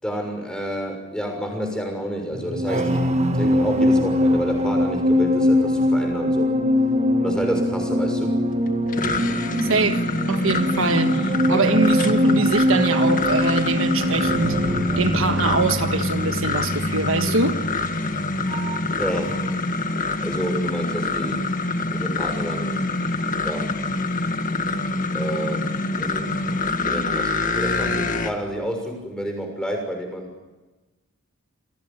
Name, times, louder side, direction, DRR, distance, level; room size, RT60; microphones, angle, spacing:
voice 1, 0.0-6.5 7.2-8.3 19.0-19.4 20.2-21.5 21.9-22.9 23.4-23.7 25.1-25.7 26.0-30.4, equal, 5° left, 6.3 m, -29 dB
sound 1, 2.3-19.0 19.2-19.6, left 1 dB, 30° right, 1.7 m, -23 dB
sound 2, 8.7-28.3, left 2 dB, 40° left, 1.9 m, -25 dB
voice 2, 9.6-14.6 15.0-17.6, right 3 dB, 70° right, 1.5 m, -23 dB
28.0 x 19.5 x 9.0 m
head